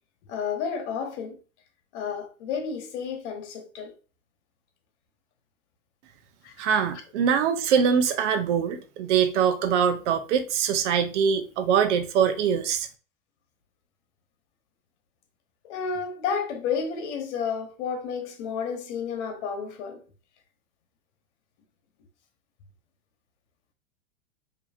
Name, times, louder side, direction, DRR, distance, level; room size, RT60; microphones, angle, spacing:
voice 1, 0.3-1.4 1.9-3.9 6.4-6.5 15.6-20.0, left 6 dB, 60° left, 1.1 m, -31 dB
voice 2, 6.6-12.9, right 7 dB, 65° right, 0.7 m, -23 dB
4.7 x 2.9 x 2.6 m
hypercardioid pair, 115°, 38 cm